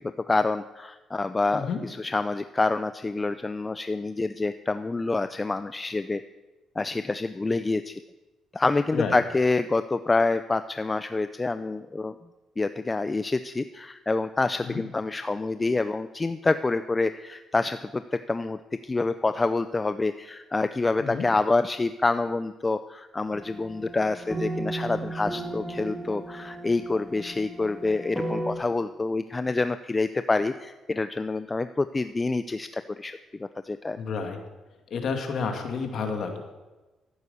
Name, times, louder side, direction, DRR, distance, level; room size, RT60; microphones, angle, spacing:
voice 1, 0.3-6.2 6.8-8.0 8.5-12.2 12.6-34.0, left 3 dB, 20° left, 11 dB, 0.5 m, -27 dB
sound 1, 23.3-28.6, right 1 dB, 5° right, 2.3 m, -35 dB
voice 2, 34.0-34.4 34.9-36.4, left 5 dB, 60° left, 4 dB, 2.3 m, -30 dB
14.0 x 9.6 x 6.9 m, 1.2 s
cardioid pair, 90°, 0 cm